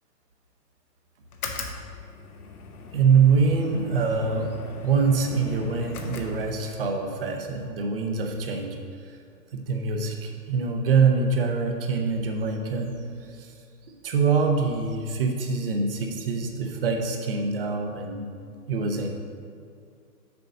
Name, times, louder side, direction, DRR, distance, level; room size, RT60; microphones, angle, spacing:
sound 1, 1.3-6.9, left 4 dB, 65° left, 1.0 m, -39 dB
voice 1, 2.9-4.6 4.8-8.8 9.5-13.0 13.4-13.5 14.0-18.3 18.7-19.1, right 5 dB, 35° right, 3 dB, 0.7 m, -24 dB
6.8 x 3.9 x 6.4 m, 2.3 s
hypercardioid pair, 150°, 48 cm